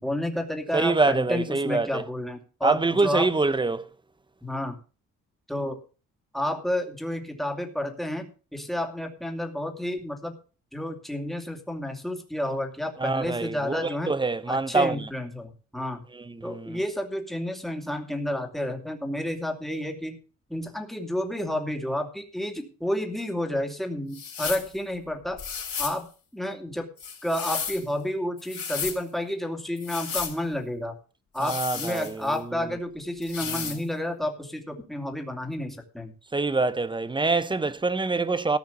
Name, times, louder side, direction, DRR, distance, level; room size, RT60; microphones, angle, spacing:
voice 1, 0.0-3.3 4.4-4.8 5.5-5.8 6.3-10.4 10.7-14.1 14.5-16.0 16.4-20.2 20.5-25.4 25.8-26.9 27.2-31.0 31.3-36.1, left 1 dB, ahead, 2.6 m, -30 dB
voice 2, 0.7-2.0 2.6-3.9 13.0-15.1 16.1-16.8 31.4-32.7 33.5-33.7 36.3-38.6, right 3 dB, 15° right, 0.8 m, -25 dB
sound 1, 24.1-24.7 25.4-26.0 27.0-27.8 28.4-29.0 29.8-30.4 31.4-32.4 33.2-33.8, left 6 dB, 45° left, 3.9 m, -33 dB
14.5 x 5.6 x 6.9 m
cardioid pair, 90°, 30 cm